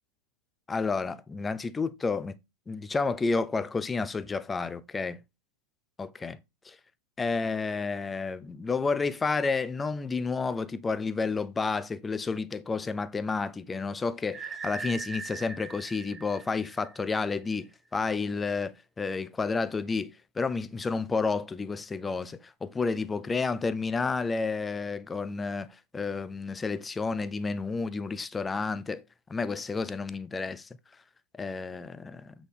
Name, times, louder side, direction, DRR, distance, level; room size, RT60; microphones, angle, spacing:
voice 1, 0.7-2.3 2.7-5.2 6.0-6.4 6.7-6.8 7.2-25.7 25.9-29.0 29.3-30.7 31.4-32.3, left 4 dB, 15° left, 0.6 m, -30 dB
sound 1, 14.3-17.2, right 4 dB, 20° right, 1.7 m, -40 dB
8.1 x 6.2 x 3.4 m
figure-of-eight pair, 90°, 0 cm